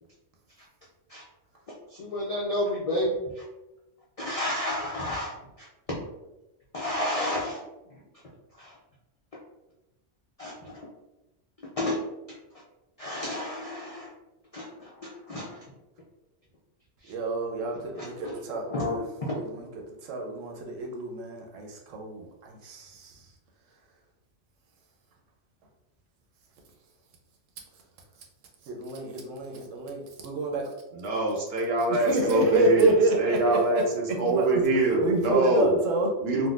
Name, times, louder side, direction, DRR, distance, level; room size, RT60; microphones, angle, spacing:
voice 1, 1.7-3.4 4.2-6.0 6.7-7.6 7.9-8.0 8.5-8.8 9.3-9.4 10.4-10.9 11.8-12.0 12.3-12.4 13.0-14.1 14.5-15.6 17.0-17.1 18.0-18.3 18.7-19.9, left 1 dB, 65° left, -4 dB, 0.3 m, -32 dB
voice 2, 17.1-19.0 19.3-19.7 20.0-23.3 28.6-30.7 31.9-36.1, right 2 dB, 90° right, 1 dB, 1.0 m, -28 dB
voice 3, 31.0-32.9 33.2-35.8 36.2-36.5, right 2 dB, 60° right, -1 dB, 0.8 m, -24 dB
3.7 x 2.1 x 2.4 m, 0.97 s
omnidirectional pair, 1.3 m